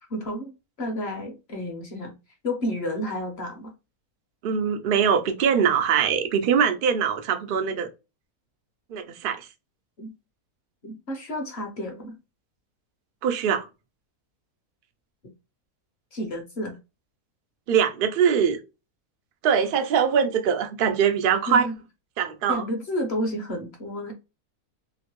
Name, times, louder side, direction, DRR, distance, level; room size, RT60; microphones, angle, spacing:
voice 1, 0.1-0.5 0.8-2.1 2.4-3.7 10.0-10.1 10.8-12.1 16.1-16.8 21.5-21.7 22.5-24.1, left 1 dB, 55° left, 0.8 m, -31 dB
voice 2, 4.4-7.9 8.9-9.5 13.2-13.7 17.7-18.6 19.4-21.7 22.2-22.6, right 7 dB, 80° right, 0.4 m, -22 dB
3.0 x 2.5 x 2.9 m
omnidirectional pair, 1.6 m